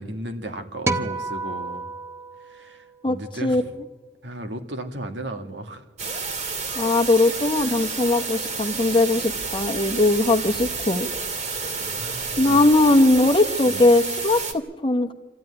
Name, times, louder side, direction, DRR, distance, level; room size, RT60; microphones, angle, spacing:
voice 1, 0.0-1.9 2.4-3.7 4.2-5.8 11.8-12.6 13.7-13.9, right 1 dB, 80° right, 5 dB, 2.1 m, -35 dB
sound 1, 0.9-3.3, right 2 dB, 15° right, 0.9 m, -30 dB
sound 2, 6.0-14.5, right 4 dB, 40° right, 2.4 m, -30 dB
voice 2, 6.7-11.1 12.4-15.1, left 2 dB, 30° left, 7 dB, 1.1 m, -19 dB
27.0 x 14.0 x 10.0 m, 1.3 s
head